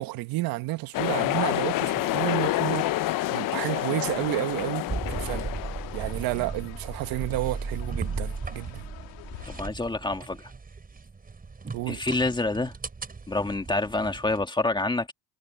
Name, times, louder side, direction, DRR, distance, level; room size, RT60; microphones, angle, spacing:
voice 1, 0.0-2.9 3.3-5.5 5.9-8.9 11.7-12.0, right 18 dB, 75° right, 1.5 m, -31 dB
sound 1, 0.9-6.3, left 16 dB, 65° left, 1.1 m, -28 dB
sound 2, 4.0-9.7, left 21 dB, 85° left, 2.6 m, -46 dB
sound 3, 4.9-14.4, right 4 dB, 25° right, 5.7 m, -36 dB
voice 2, 9.5-10.4 11.9-12.7 13.3-15.1, left 2 dB, 15° left, 2.3 m, -27 dB
supercardioid pair, 90°, 35 cm